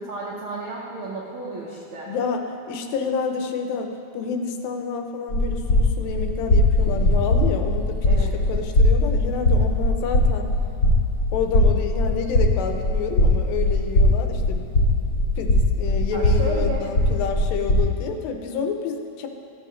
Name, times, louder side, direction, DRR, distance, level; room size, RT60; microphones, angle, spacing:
voice 1, 0.0-2.1 8.0-8.3 16.1-16.9, right 4 dB, 85° right, -5 dB, 1.1 m, -33 dB
voice 2, 2.1-10.5 11.3-14.6 15.4-19.3, left 5 dB, 85° left, 5 dB, 2.5 m, -29 dB
sound 1, 5.3-17.8, left 1 dB, 40° left, 1.4 m, -20 dB
14.0 x 7.8 x 3.2 m, 2.9 s
omnidirectional pair, 4.0 m